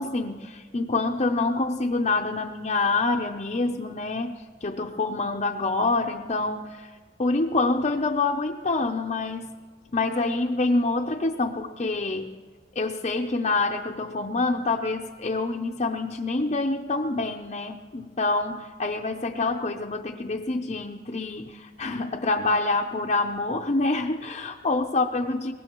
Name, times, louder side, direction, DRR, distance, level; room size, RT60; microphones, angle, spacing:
voice 1, 0.0-4.3 4.6-6.9 7.2-9.6 9.9-12.4 12.8-25.5, left 3 dB, 35° left, 2 dB, 0.5 m, -26 dB
23.5 x 20.0 x 3.0 m, 1.5 s
head